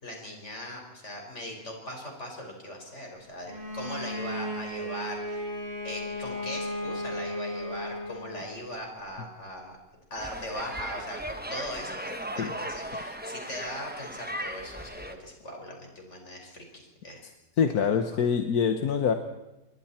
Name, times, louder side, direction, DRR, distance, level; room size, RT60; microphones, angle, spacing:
voice 1, 0.0-5.5 5.8-9.8 10.1-17.3 18.1-18.2, left 1 dB, 50° left, 1 dB, 5.6 m, -39 dB
Bowed string instrument, 3.5-8.6, equal, 30° right, 5.4 m, -35 dB
sound 1, 10.2-15.1, right 1 dB, 5° right, 1.3 m, -37 dB
voice 2, 17.6-19.1, left 7 dB, 80° left, 7 dB, 1.6 m, -25 dB
28.0 x 21.5 x 4.4 m, 1.0 s
omnidirectional pair, 1.6 m